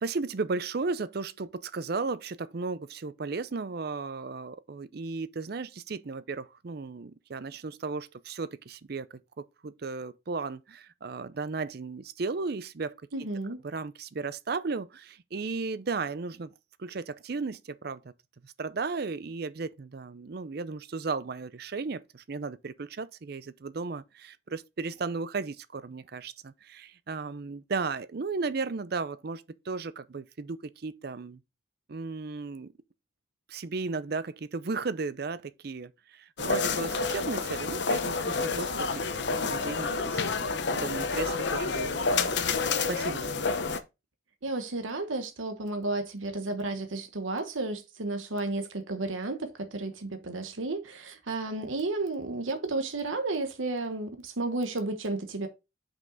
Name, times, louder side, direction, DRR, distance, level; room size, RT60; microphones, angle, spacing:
voice 1, 0.0-9.1 9.4-12.9 13.6-16.5 16.8-18.0 18.4-31.4 31.9-32.7 33.5-39.1 39.4-40.5 40.7-43.4, right 4 dB, 55° right, 0.5 m, -35 dB
voice 2, 13.1-13.6 44.4-55.5, right 2 dB, 90° right, 1.1 m, -32 dB
sound 1, 36.4-43.8, left 4 dB, 60° left, 0.7 m, -29 dB
5.9 x 5.4 x 3.8 m
head